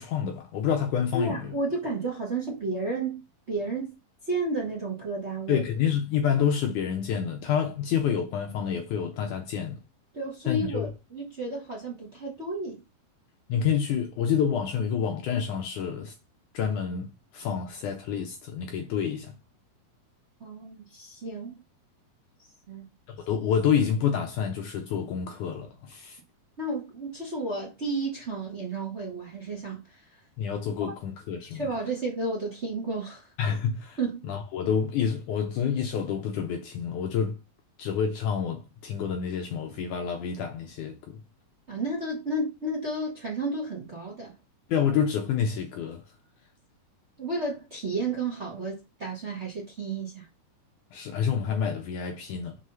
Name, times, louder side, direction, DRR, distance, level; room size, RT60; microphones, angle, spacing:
voice 1, 0.0-1.4 5.5-9.8 10.5-10.9 13.5-16.1 16.5-17.1 17.3-19.3 23.1-26.2 30.4-31.7 33.4-34.0 34.2-37.4 37.8-41.2 44.7-46.0 50.9-52.6, left 7 dB, 75° left, 1.9 m, -28 dB
voice 2, 1.1-3.2 3.5-3.9 4.2-5.6 10.1-12.8 20.4-21.6 22.7-22.9 26.6-30.2 30.8-30.9 31.5-33.3 34.0-34.2 41.7-44.3 47.2-50.3, right 2 dB, 50° right, 0.8 m, -32 dB
6.3 x 4.2 x 5.6 m
omnidirectional pair, 4.3 m